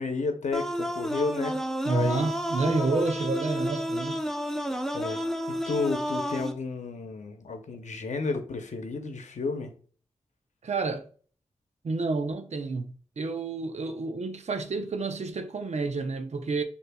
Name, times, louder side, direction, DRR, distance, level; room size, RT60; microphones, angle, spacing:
voice 1, 0.0-1.6 1.9-2.3 2.6-2.8 4.9-9.7, left 4 dB, 75° left, 0.8 m, -32 dB
sound 1, 0.5-6.5, equal, 5° left, 0.7 m, -31 dB
voice 2, 1.8-4.2 10.6-11.0 11.8-16.6, right 3 dB, 65° right, 0.7 m, -29 dB
6.6 x 2.8 x 2.3 m
cardioid pair, 40°, 12 cm